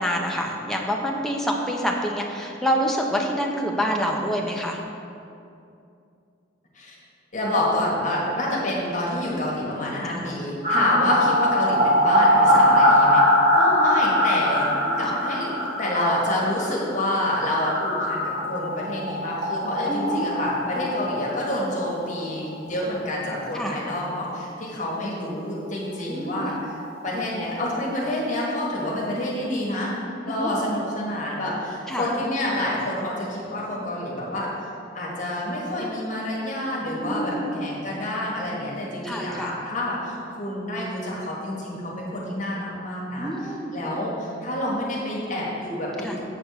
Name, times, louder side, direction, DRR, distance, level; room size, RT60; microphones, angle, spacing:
voice 1, 0.0-4.8 10.1-10.4 10.7-10.9 12.8-12.9 14.7-15.2 19.9-20.3 23.5-23.8 26.0-26.5 30.3-30.5 31.9-32.1 36.9-37.6 39.0-39.5 41.7-41.8 43.2-43.7 46.0-46.1, equal, ahead, 0 dB, 0.6 m, -27 dB
voice 2, 7.3-13.2 13.5-14.7 15.0-26.8 27.0-29.9 30.3-34.5 34.9-46.2, left 1 dB, 40° left, -4 dB, 1.4 m, -28 dB
sound 1, 10.6-22.2 22.5-22.6 22.9-23.0 26.0-26.1 26.3-26.4 26.7-28.5 28.8-28.9, left 1 dB, 30° right, 1.1 m, -22 dB
7.6 x 3.5 x 6.4 m, 2.6 s
head